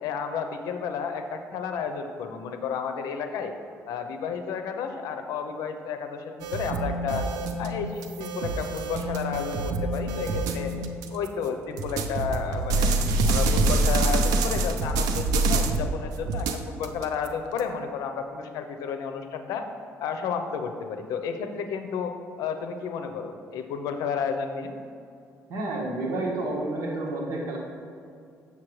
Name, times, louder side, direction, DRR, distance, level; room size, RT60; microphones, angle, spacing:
voice 1, 0.0-3.5 3.9-7.3 7.6-10.7 11.1-13.0 13.3-19.7 20.0-22.1 22.4-24.7, left 6 dB, 85° left, 6 dB, 0.7 m, -32 dB
sound 1, 6.4-11.3 11.8-15.9 16.3-17.6, right 3 dB, 85° right, 0.6 m, -26 dB
voice 2, 25.5-27.6, right 2 dB, 65° right, -2 dB, 1.7 m, -30 dB
7.4 x 7.1 x 3.2 m, 2.4 s
cardioid pair, 130°, 6 cm